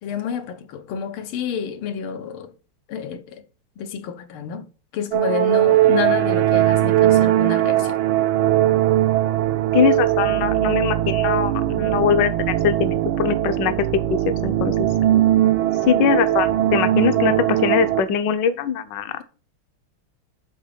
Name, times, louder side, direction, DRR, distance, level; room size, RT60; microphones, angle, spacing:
voice 1, 0.0-2.5 2.9-3.4 3.8-4.7 4.9-8.0, left 7 dB, 85° left, 1.8 m, -29 dB
sound 1, 5.1-18.0, right 13 dB, 75° right, 1.5 m, -19 dB
voice 2, 9.7-13.7 14.1-14.9 15.9-19.1, left 8 dB, 70° left, 1.3 m, -22 dB
7.3 x 3.9 x 6.6 m
omnidirectional pair, 2.3 m